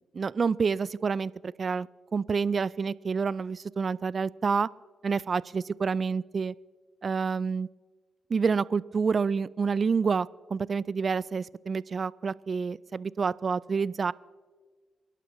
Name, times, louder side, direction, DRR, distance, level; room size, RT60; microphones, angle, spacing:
voice 1, 0.0-4.7 5.0-6.5 7.0-7.7 8.3-14.1, right 5 dB, 50° right, 22 dB, 0.3 m, -28 dB
28.0 x 11.5 x 3.0 m, 1.5 s
hypercardioid pair, 40°, 0 cm